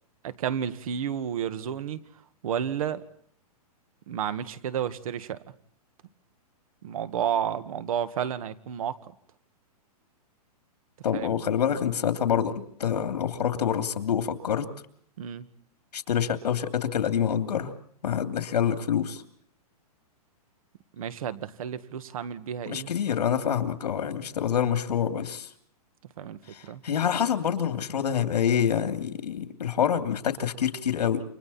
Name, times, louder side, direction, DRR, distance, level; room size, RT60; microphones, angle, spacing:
voice 1, 0.2-2.0 2.4-3.0 4.1-5.4 6.8-9.0 11.1-11.4 15.2-15.5 21.0-22.9 26.2-26.8, right 9 dB, 60° right, 12 dB, 1.8 m, -31 dB
voice 2, 11.0-14.7 15.9-17.7 18.0-19.2 22.7-25.5 26.5-31.2, left 8 dB, 90° left, 8 dB, 2.9 m, -26 dB
29.0 x 25.0 x 4.3 m, 0.63 s
hypercardioid pair, 160°, 20 cm